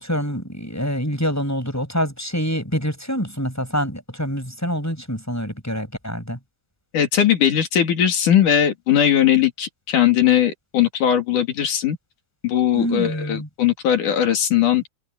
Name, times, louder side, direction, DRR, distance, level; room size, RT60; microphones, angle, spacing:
voice 1, 0.0-6.4 12.7-13.5, equal, 5° left, 6.1 m, -26 dB
voice 2, 6.9-12.0 12.4-14.8, left 10 dB, 65° left, 4.0 m, -19 dB
omnidirectional pair, 3.9 m